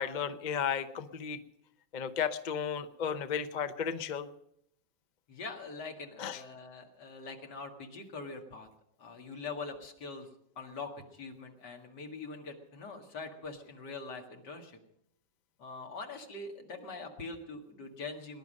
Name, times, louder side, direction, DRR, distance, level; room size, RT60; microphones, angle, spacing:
voice 1, 0.0-1.4 1.9-4.3 6.2-6.4, left 7 dB, 50° left, 11 dB, 0.5 m, -34 dB
voice 2, 5.3-8.7 9.0-10.3 10.6-14.8 15.6-18.4, left 3 dB, 65° left, 3 dB, 2.5 m, -43 dB
20.0 x 11.0 x 6.4 m, 0.75 s
omnidirectional pair, 2.0 m